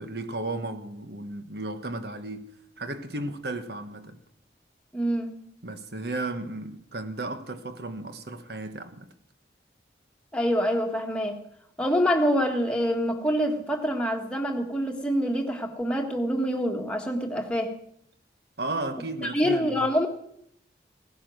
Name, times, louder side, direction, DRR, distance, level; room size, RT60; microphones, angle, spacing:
voice 1, 0.0-4.2 5.6-9.1 18.6-19.9, right 2 dB, 65° right, 1.3 m, -34 dB
voice 2, 4.9-5.4 10.3-11.4 11.8-17.7 19.3-20.1, equal, 5° left, 1.6 m, -26 dB
17.0 x 10.0 x 6.3 m
head